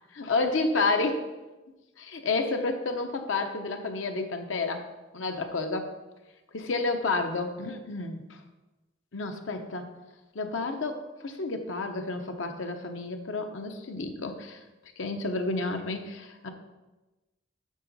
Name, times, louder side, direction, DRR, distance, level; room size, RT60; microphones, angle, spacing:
voice 1, 0.1-1.3 2.0-4.9 5.1-5.9 6.5-8.2 9.1-9.9 10.3-14.6 15.0-16.5, left 3 dB, 80° left, 6 dB, 0.8 m, -30 dB
7.4 x 5.8 x 4.1 m, 1.1 s
head